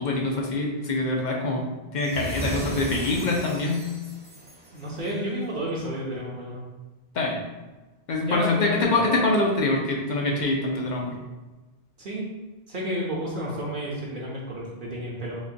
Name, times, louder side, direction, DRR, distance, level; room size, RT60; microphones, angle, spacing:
voice 1, 0.0-1.6 1.9-3.9 7.1-7.4 8.1-11.2, left 2 dB, 55° left, 0 dB, 0.6 m, -24 dB
sound 1, 2.0-5.3, right 1 dB, 10° right, 0.6 m, -36 dB
voice 2, 4.7-6.6 8.2-9.0 12.0-12.3 12.7-15.4, equal, 55° right, -5 dB, 0.9 m, -31 dB
4.9 x 2.2 x 2.7 m, 1.2 s
omnidirectional pair, 1.0 m